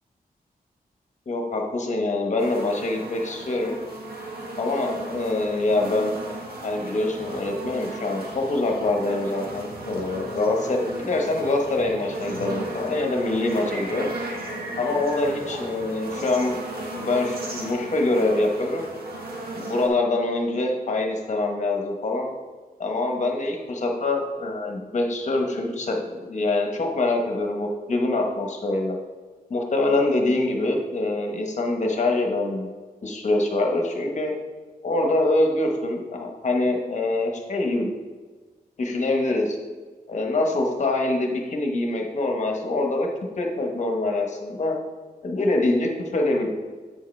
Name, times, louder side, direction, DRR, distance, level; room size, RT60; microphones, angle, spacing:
voice 1, 1.3-3.8 4.6-6.2 6.6-14.1 14.8-16.6 16.9-18.9 19.5-22.3 22.8-29.0 29.5-32.7 33.0-34.3 34.8-37.9 38.8-39.6 40.1-43.1 43.4-44.8 45.2-46.5, left 2 dB, 50° left, 2 dB, 1.1 m, -24 dB
sound 1, 2.4-19.9, right 2 dB, 75° right, 1.4 m, -35 dB
7.7 x 6.5 x 3.3 m, 1.4 s
wide cardioid pair, 170°, 16 cm